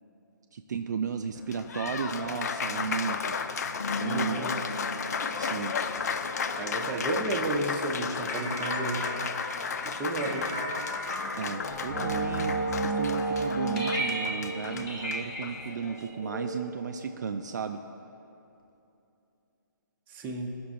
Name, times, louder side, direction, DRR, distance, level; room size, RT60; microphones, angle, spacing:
voice 1, 0.5-3.4 4.0-4.4 5.3-5.8 11.4-17.8, right 6 dB, 60° right, 6 dB, 0.3 m, -34 dB
sound 1, 0.7-12.2 12.5-12.6, left 2 dB, 85° left, 0.8 m, -42 dB
Applause, 1.4-16.1, left 5 dB, 50° left, 0.4 m, -34 dB
voice 2, 4.0-4.6 6.5-9.2 9.8-10.5 20.1-20.6, right 2 dB, 15° right, 0 dB, 0.7 m, -32 dB
sound 2, 8.3-17.2, right 2 dB, 25° left, 1.0 m, -33 dB
14.5 x 6.0 x 2.5 m, 2.8 s
figure-of-eight pair, 140°, 11 cm